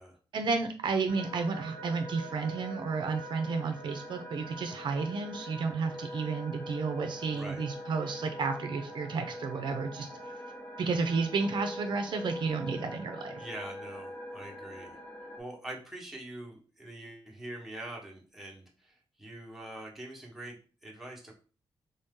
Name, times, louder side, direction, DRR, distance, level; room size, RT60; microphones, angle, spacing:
voice 1, 0.3-10.1 10.8-13.5, right 4 dB, 60° right, 6 dB, 0.5 m, -32 dB
sound 1, 1.1-15.4, equal, 35° left, 1.2 m, -43 dB
voice 2, 7.3-7.6 13.4-15.0 15.4-21.3, right 1 dB, ahead, -2 dB, 1.1 m, -44 dB
3.7 x 2.7 x 3.6 m, 0.37 s
cardioid pair, 115°, 9 cm